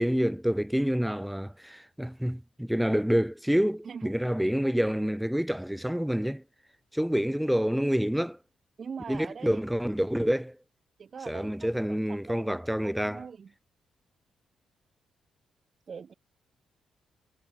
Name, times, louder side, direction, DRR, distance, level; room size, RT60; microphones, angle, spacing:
voice 1, 0.0-6.4 6.9-8.4 9.1-10.6 11.3-13.3, equal, 5° right, 0.5 m, -28 dB
voice 2, 3.8-4.2 8.8-9.6 11.0-12.6 12.8-13.5 15.9-16.1, right 6 dB, 55° right, 3.4 m, -42 dB
supercardioid pair, 55°, 0 cm